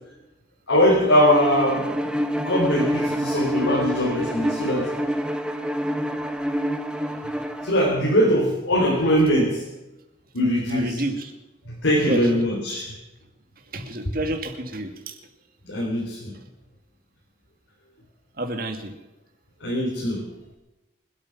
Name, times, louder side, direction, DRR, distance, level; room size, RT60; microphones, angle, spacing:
voice 1, 0.7-1.9 2.4-4.9 7.6-9.7 10.3-11.0 11.7-12.9 15.6-16.4 19.6-20.3, equal, 90° left, -2 dB, 3.6 m, -21 dB
Bowed string instrument, 1.2-7.8, equal, 5° right, 0.8 m, -27 dB
voice 2, 10.7-11.3 12.0-12.2 13.7-15.1 18.4-18.9, right 1 dB, 50° right, 5 dB, 2.2 m, -29 dB
25.5 x 8.7 x 5.9 m, 1.0 s
head